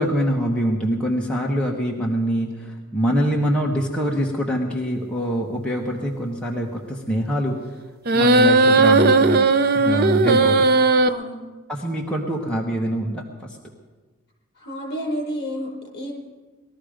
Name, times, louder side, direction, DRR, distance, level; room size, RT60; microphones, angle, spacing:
voice 1, 0.0-7.6 8.1-9.4 9.7-10.7 11.7-13.6, equal, 5° left, -2 dB, 1.3 m, -24 dB
sound 1, 8.1-11.1, right 3 dB, 45° right, 0.6 m, -16 dB
voice 2, 11.0-11.3 14.5-16.1, equal, 55° left, -2 dB, 4.9 m, -30 dB
20.0 x 13.0 x 5.1 m, 1.3 s
head